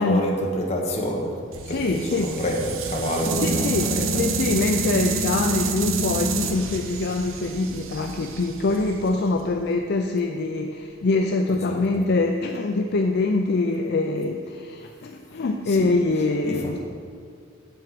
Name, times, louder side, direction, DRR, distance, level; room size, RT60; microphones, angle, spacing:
voice 1, 0.0-4.3 11.5-11.8 15.7-15.9 16.4-16.8, equal, 35° left, 0 dB, 1.2 m, -28 dB
sound 1, 1.5-9.6, right 3 dB, 85° right, 0.7 m, -28 dB
voice 2, 1.6-2.3 3.4-3.9 4.1-16.8, left 3 dB, 55° left, 4 dB, 0.4 m, -24 dB
7.7 x 7.2 x 5.0 m, 2.2 s
head